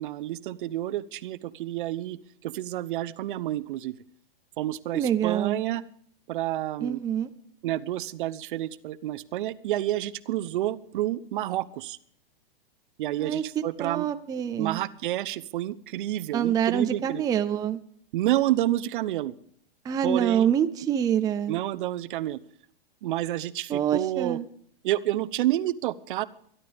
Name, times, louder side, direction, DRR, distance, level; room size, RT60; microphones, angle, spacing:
voice 1, 0.0-3.9 4.6-5.8 6.3-7.0 7.6-12.0 13.0-14.1 14.6-17.2 18.1-19.3 20.0-20.5 21.5-22.4 23.0-24.4 24.8-26.2, right 14 dB, 55° right, 17 dB, 0.8 m, -29 dB
voice 2, 4.9-5.6 6.8-7.3 13.2-13.4 13.8-14.8 16.3-17.8 19.8-21.6 23.7-24.4, right 9 dB, 10° right, 8 dB, 0.5 m, -26 dB
24.0 x 11.5 x 3.5 m, 0.67 s
hypercardioid pair, 135°, 30 cm